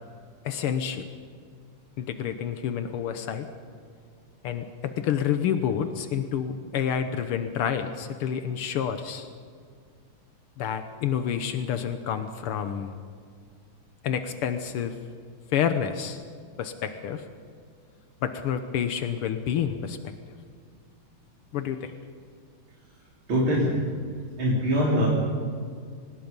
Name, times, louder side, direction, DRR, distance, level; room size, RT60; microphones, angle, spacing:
voice 1, 0.5-1.0 2.0-3.5 4.4-9.3 10.6-12.9 14.0-15.0 15.5-16.2 16.6-17.3 18.2-20.0 21.5-21.9, left 8 dB, 80° left, 8 dB, 1.9 m, -28 dB
voice 2, 23.3-23.8 24.4-25.1, equal, 65° right, -6 dB, 4.3 m, -23 dB
25.0 x 20.0 x 5.3 m, 2.1 s
omnidirectional pair, 2.4 m